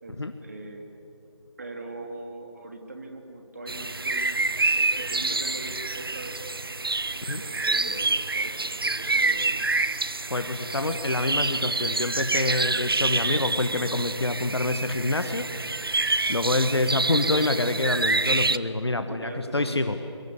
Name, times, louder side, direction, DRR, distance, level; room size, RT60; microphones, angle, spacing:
voice 1, 0.0-0.9 1.6-6.4 7.1-9.7 19.0-19.8, right 2 dB, 35° right, 4 dB, 2.7 m, -41 dB
sound 1, 3.7-18.6, right 3 dB, 50° right, 0.7 m, -27 dB
voice 2, 10.3-15.5 16.3-20.0, left 2 dB, 60° left, 9 dB, 1.5 m, -26 dB
25.0 x 23.0 x 8.5 m, 2.7 s
figure-of-eight pair, 165°, 15 cm